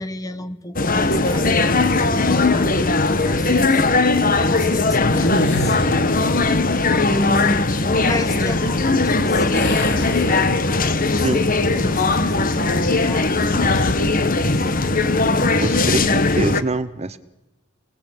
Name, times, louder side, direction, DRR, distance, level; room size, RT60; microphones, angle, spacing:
voice 1, 0.0-3.9 4.3-6.6 7.1-9.9 10.1-10.7 11.0-14.7, left 1 dB, 15° left, 12 dB, 1.3 m, -32 dB
sound 1, 0.8-16.6, left 3 dB, 40° left, 1.3 m, -19 dB
sound 2, 1.6-2.2 5.1-6.2 9.5-10.9 11.4-11.6 13.6-14.1, left 1 dB, 55° left, 3.1 m, -27 dB
voice 2, 15.6-17.2, right 2 dB, 30° right, 12 dB, 1.0 m, -24 dB
28.5 x 20.5 x 8.8 m, 1.0 s
head